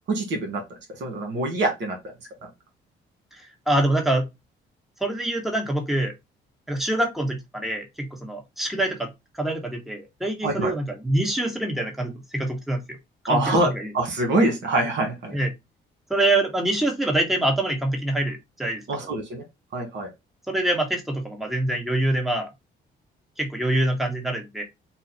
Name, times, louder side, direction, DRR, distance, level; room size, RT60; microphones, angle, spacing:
voice 1, 0.1-0.6 1.0-2.0 10.4-10.7 13.3-15.4 18.9-19.4 19.7-20.1, right 2 dB, 65° right, 1.9 m, -24 dB
voice 2, 3.3-4.3 5.0-6.1 6.7-9.1 9.3-13.0 13.3-13.4 13.8-13.9 15.3-15.5 16.1-19.1 20.5-22.5 23.4-24.6, right 1 dB, ahead, 1.3 m, -25 dB
4.0 x 2.4 x 4.2 m
cardioid pair, 90°, 20 cm